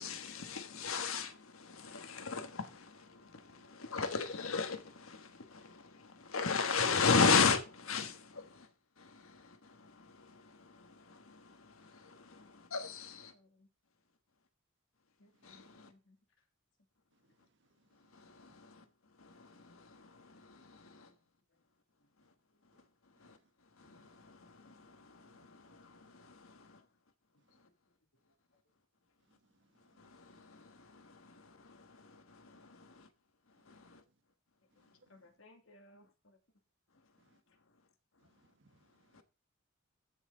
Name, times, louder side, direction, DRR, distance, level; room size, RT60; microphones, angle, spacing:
voice 1, 0.0-13.4 15.4-15.9 17.4-17.5 17.9-21.2 22.2-22.3 22.6-26.9 27.5-27.7 29.7-33.1 33.4-34.0 34.8-35.0 36.9-37.9 38.1-38.5 38.9-39.2, left 5 dB, 90° left, 1.5 m, -37 dB
voice 2, 12.1-12.7 13.3-13.7 15.2-16.5 20.8-21.7 22.0-22.1 22.6-22.7 26.5-26.9 27.3-28.6 32.7-32.8 33.7-34.1 34.7-34.8 35.1-36.4 36.9-37.0 37.5-37.6, left 1 dB, 65° left, 2.8 m, -66 dB
voice 3, 15.3-15.7 17.1-18.6 19.3-19.7 22.7-22.9 23.2-23.5 23.8-25.9 27.4-27.6 29.2-30.5 33.5-34.2 34.7-35.1 37.2-37.4 38.2-39.2, right 2 dB, 60° right, 1.4 m, -74 dB
14.5 x 5.9 x 4.0 m
head